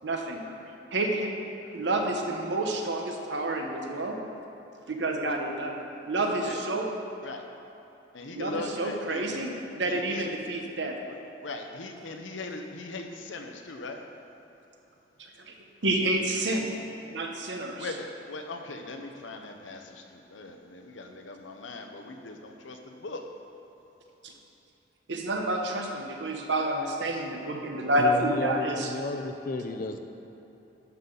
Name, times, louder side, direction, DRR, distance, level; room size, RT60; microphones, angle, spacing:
voice 1, 0.0-0.4 0.9-1.3 1.7-4.2 4.9-5.7 6.0-6.9 8.3-10.9 15.2-15.5 15.8-16.7 17.1-17.9 24.2-24.3 25.1-28.9, right 1 dB, 70° right, 2 dB, 0.9 m, -29 dB
voice 2, 6.3-6.6 7.2-7.4 8.1-9.5 9.9-10.2 11.4-14.0 17.8-23.2, left 2 dB, 90° left, 4 dB, 0.8 m, -39 dB
voice 3, 28.0-30.0, left 3 dB, 45° left, 6 dB, 0.5 m, -33 dB
11.5 x 5.7 x 3.9 m, 2.9 s
head